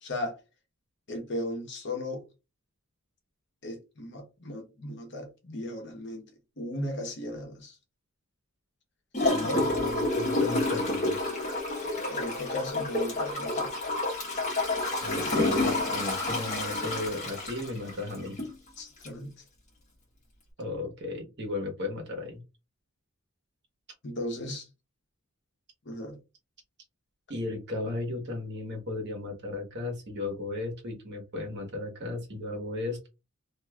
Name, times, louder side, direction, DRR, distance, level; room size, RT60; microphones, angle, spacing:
voice 1, 0.0-0.4 1.1-2.2 3.6-6.3 6.6-7.8 9.5-9.6 12.1-13.8 18.8-19.3 24.0-24.7 25.8-26.2, left 1 dB, 55° left, 1.0 m, -36 dB
Gurgling / Toilet flush, 9.1-18.5 19.0-19.1, left 2 dB, 35° left, 1.2 m, -29 dB
voice 2, 9.3-11.4 15.0-18.4 20.6-22.4 27.3-33.1, left 2 dB, 50° right, 1.2 m, -35 dB
3.0 x 2.6 x 2.3 m
head